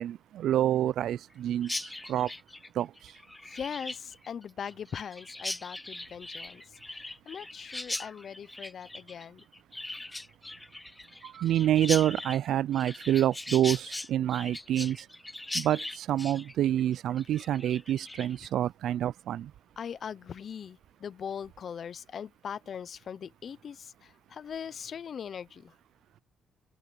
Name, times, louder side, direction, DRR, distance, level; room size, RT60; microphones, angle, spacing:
voice 1, 0.0-2.3 2.8-2.9 11.2-15.1 15.5-19.5, right 11 dB, 80° right, 0.4 m, -27 dB
Chirp tweet, 1.6-18.5, left 2 dB, 10° left, 1.0 m, -40 dB
voice 2, 3.4-9.4 19.8-25.7, left 7 dB, 50° left, 0.6 m, -40 dB
open air
cardioid pair, 110°, 0 cm